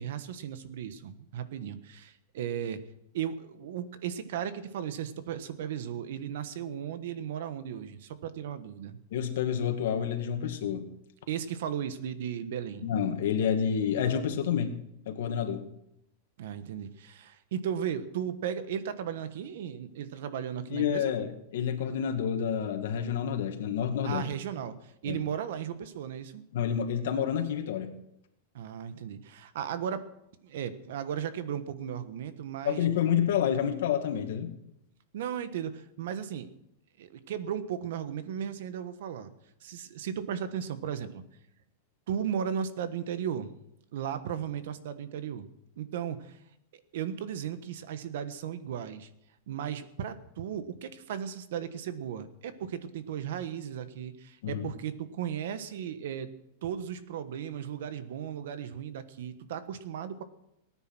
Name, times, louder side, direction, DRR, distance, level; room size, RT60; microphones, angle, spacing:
voice 1, 0.0-2.8 3.1-9.0 11.3-12.8 16.4-21.1 24.0-26.4 28.5-30.1 30.4-32.9 35.1-36.5 37.0-39.3 39.6-41.2 42.1-43.5 43.9-45.5 45.8-46.4 46.7-49.1 49.5-56.3 56.6-60.2, right 9 dB, 60° right, 12 dB, 1.3 m, -36 dB
voice 2, 9.1-10.8 12.8-14.7 15.1-15.7 20.7-24.3 25.1-25.2 26.5-27.9 32.6-34.5 54.4-54.7, left 8 dB, 65° left, 4 dB, 2.2 m, -29 dB
19.0 x 9.7 x 6.1 m, 0.80 s
supercardioid pair, 175°, 0 cm